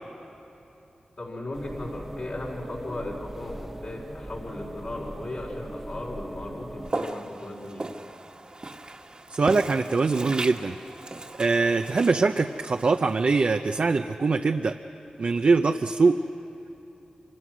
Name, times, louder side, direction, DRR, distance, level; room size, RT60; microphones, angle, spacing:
voice 1, 1.2-7.9, left 1 dB, 65° left, -5 dB, 4.6 m, -36 dB
sound 1, 1.5-6.9, right 1 dB, 10° right, 1.3 m, -40 dB
Walk footsteps, 6.8-14.0, right 2 dB, 40° right, 1.6 m, -38 dB
voice 2, 9.3-10.8 11.4-14.8 15.2-16.2, right 4 dB, 60° right, 5 dB, 0.7 m, -23 dB
27.5 x 26.0 x 6.3 m, 3.0 s
wide cardioid pair, 65°, 3 cm